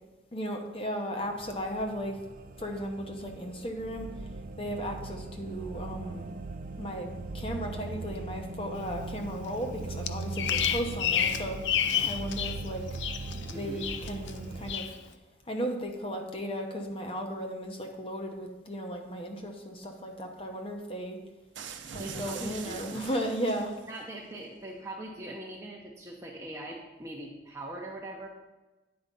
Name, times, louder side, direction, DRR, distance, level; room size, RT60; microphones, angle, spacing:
voice 1, 0.3-2.2 2.6-4.3 4.6-6.3 6.8-12.8 13.3-14.9 15.5-21.2 21.9-23.8, equal, 30° left, 3 dB, 0.8 m, -35 dB
sound 1, 1.2-14.7, right 3 dB, 45° right, 0.4 m, -40 dB
Bird vocalization bird call bird song, 10.1-12.6 12.9-13.5 13.8-14.3 14.7-14.9, left 9 dB, 75° left, 0.5 m, -29 dB
voice 2, 13.5-13.8 22.0-23.0 23.9-28.3, right 1 dB, 15° right, -3 dB, 0.7 m, -41 dB
sound 2, 21.5-24.0, right 6 dB, 85° right, 0.6 m, -42 dB
9.6 x 4.7 x 5.4 m, 1.2 s
head